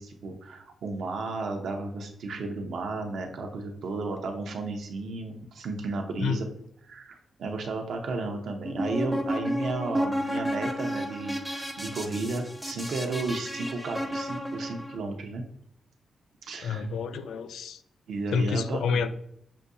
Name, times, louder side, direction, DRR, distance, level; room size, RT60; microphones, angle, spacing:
voice 1, 0.0-6.5 6.8-15.4 16.4-16.9 18.1-19.1, right 3 dB, 70° right, 0.7 m, -33 dB
sound 1, 8.6-15.0, equal, ahead, 0.5 m, -32 dB
voice 2, 16.6-17.8 18.3-19.1, left 6 dB, 90° left, 0.3 m, -28 dB
6.6 x 2.7 x 2.6 m
wide cardioid pair, 165°, 0 cm